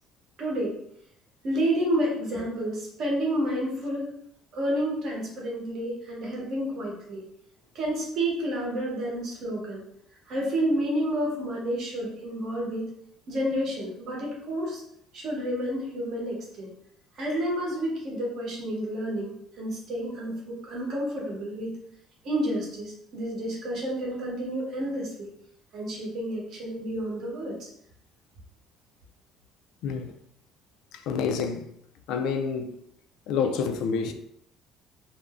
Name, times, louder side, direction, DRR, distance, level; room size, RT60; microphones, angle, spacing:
voice 1, 0.4-0.7 1.4-4.1 4.5-7.2 7.7-9.8 10.3-12.9 13.3-14.8 15.1-16.7 17.1-21.7 22.2-25.3 25.7-27.7, right 1 dB, 45° right, 0.8 m, -30 dB
voice 2, 30.9-31.7 32.1-32.8 33.3-34.1, left 6 dB, 65° left, 0.3 m, -28 dB
2.5 x 2.1 x 3.4 m
cardioid pair, 170°, 0 cm